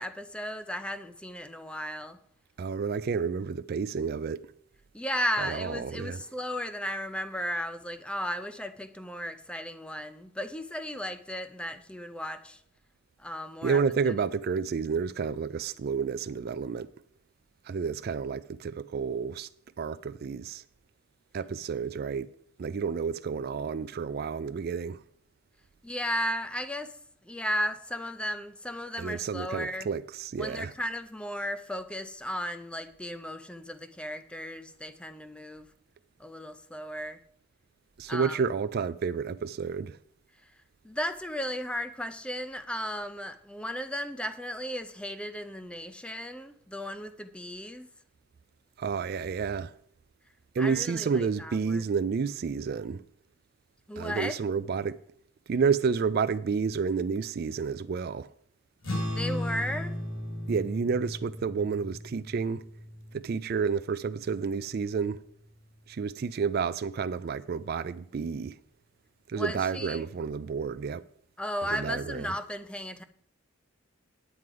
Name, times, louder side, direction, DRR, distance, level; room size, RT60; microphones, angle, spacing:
voice 1, 0.0-2.2 4.9-12.6 13.2-14.1 25.8-26.9 27.2-29.9 30.4-35.7 36.2-37.2 38.1-38.4 40.8-47.9 50.6-51.8 53.9-54.4 59.1-60.0 69.3-70.1 71.4-73.0, equal, 5° left, 0.5 m, -35 dB
voice 2, 2.6-4.5 5.4-6.2 13.6-16.9 17.6-19.5 19.8-20.6 21.3-22.3 22.6-25.0 29.0-30.7 38.0-40.0 48.8-49.7 50.5-53.0 54.0-55.0 55.5-58.3 60.5-62.6 63.1-65.2 65.9-68.6 69.3-71.0 71.6-72.3, right 5 dB, 45° right, 0.3 m, -30 dB
sound 1, 58.8-65.5, left 1 dB, 75° left, 4.8 m, -37 dB
9.5 x 9.2 x 4.8 m
head